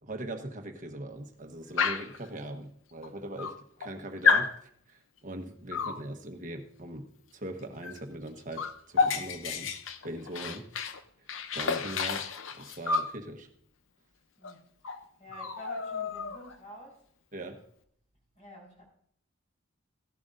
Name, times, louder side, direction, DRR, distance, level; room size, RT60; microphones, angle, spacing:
voice 1, 0.0-9.7 10.0-10.7 11.5-12.2 12.5-13.5 17.3-17.6, right 1 dB, 40° right, 5 dB, 1.2 m, -41 dB
Dog, 1.8-2.2 3.0-3.1 3.4-3.9 4.2-4.6 5.7-6.0 7.8-8.0 8.3-11.0 11.3-13.1 14.4-14.5 14.8-15.0 15.3-16.6, left 5 dB, 75° left, 0.7 m, -30 dB
voice 2, 14.4-17.0 18.3-18.9, equal, 35° left, 0 dB, 4.5 m, -49 dB
16.0 x 11.5 x 2.6 m, 0.65 s
head